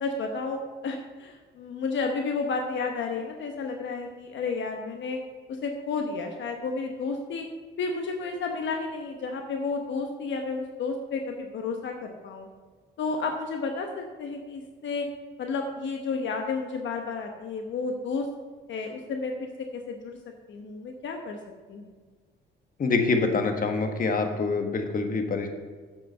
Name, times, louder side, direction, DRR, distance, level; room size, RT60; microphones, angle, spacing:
voice 1, 0.0-5.2 5.6-7.4 7.8-12.5 13.0-15.1 15.4-18.3 18.7-20.2 20.5-21.4 21.7-21.9, left 4 dB, 70° left, 3 dB, 1.0 m, -32 dB
voice 2, 22.8-25.5, left 4 dB, 45° left, 5 dB, 1.4 m, -25 dB
7.8 x 7.3 x 5.5 m, 1.4 s
cardioid pair, 90°, 20 cm